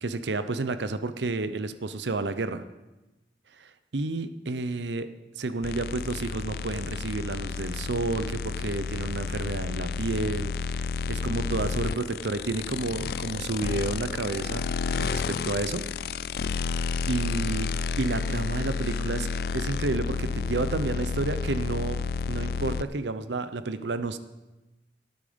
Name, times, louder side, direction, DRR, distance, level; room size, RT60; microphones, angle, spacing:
voice 1, 0.0-2.7 3.9-5.1 5.4-14.7 15.0-15.8 16.5-16.7 17.1-17.7 18.0-22.0 22.3-24.2, right 3 dB, 90° right, 12 dB, 0.7 m, -30 dB
sound 1, 5.6-22.8, left 5 dB, 60° left, 0.3 m, -31 dB
16.5 x 9.0 x 5.2 m, 1.1 s
head